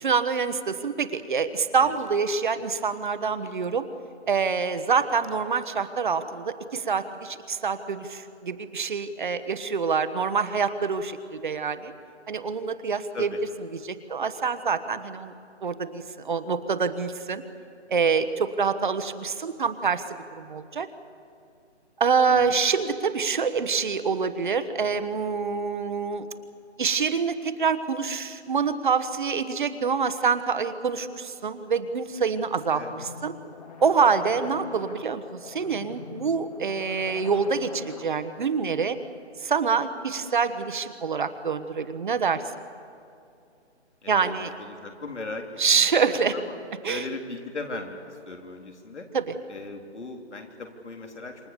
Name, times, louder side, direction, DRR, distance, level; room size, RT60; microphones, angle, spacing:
voice 1, 0.0-3.9 4.3-11.9 12.3-13.3 13.8-15.3 15.6-17.4 17.9-20.0 20.4-20.9 22.0-26.3 26.8-33.3 33.8-39.0 39.4-42.4 44.1-44.5 45.6-46.3 46.8-47.0 49.1-49.2, right 5 dB, 45° right, 10 dB, 1.2 m, -26 dB
voice 2, 22.3-22.6 32.7-33.1 44.0-45.9 46.3-46.6 46.8-49.1 49.5-51.5, left 3 dB, 75° left, 3 dB, 3.8 m, -38 dB
sound 1, 32.4-38.4, left 6 dB, 35° left, 1.9 m, -44 dB
27.5 x 24.5 x 7.0 m, 2.5 s
hypercardioid pair, 165°, 35 cm